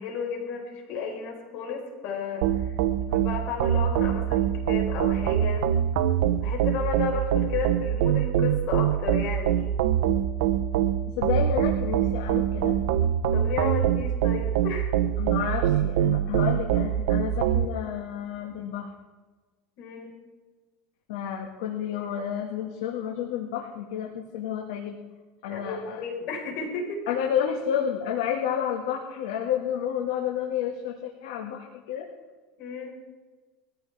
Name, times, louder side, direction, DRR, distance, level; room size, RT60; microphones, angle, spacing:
voice 1, 0.0-2.8 3.0-5.6 6.4-9.6 13.3-14.9 19.8-20.2 25.5-27.0 32.6-33.0, left 5 dB, 55° left, 2 dB, 5.1 m, -33 dB
sound 1, 2.4-17.7, right 10 dB, 80° right, 0.9 m, -24 dB
voice 2, 11.2-12.7 15.2-18.9 21.1-25.0 25.4-26.0 27.1-32.1, left 9 dB, 80° left, 0 dB, 2.1 m, -30 dB
22.5 x 15.0 x 3.6 m, 1.3 s
supercardioid pair, 140°, 2 cm